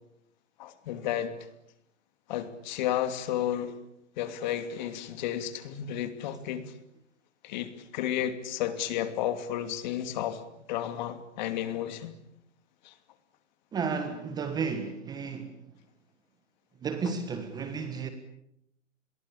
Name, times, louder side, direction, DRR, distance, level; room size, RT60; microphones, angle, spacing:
voice 1, 0.6-1.3 2.3-3.7 4.2-6.7 7.4-10.4 10.7-12.1 12.8-12.9, left 11 dB, 35° left, 2.7 m, -32 dB
voice 2, 13.7-15.6 16.8-18.1, right 5 dB, 10° right, 1.5 m, -32 dB
29.5 x 22.5 x 8.6 m
hypercardioid pair, 150°, 39 cm